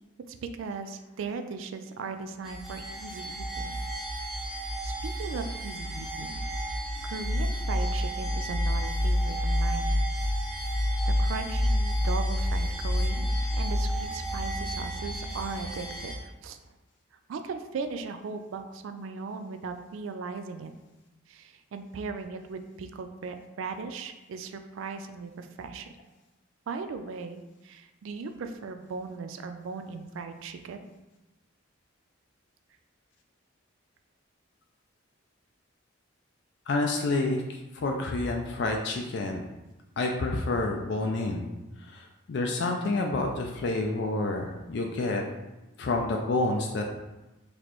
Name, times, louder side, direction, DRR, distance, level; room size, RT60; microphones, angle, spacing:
voice 1, 0.3-3.7 4.5-6.4 7.0-10.0 10.7-13.3 13.5-16.6 17.3-20.7 21.3-25.9 26.7-30.8, right 4 dB, 75° right, 7 dB, 0.3 m, -38 dB
sound 1, 2.4-16.1, equal, ahead, 0.6 m, -29 dB
voice 2, 36.7-39.4 40.0-41.4 41.9-45.2 45.8-46.9, left 2 dB, 55° left, 1 dB, 0.4 m, -29 dB
4.1 x 3.1 x 3.0 m, 1.0 s
head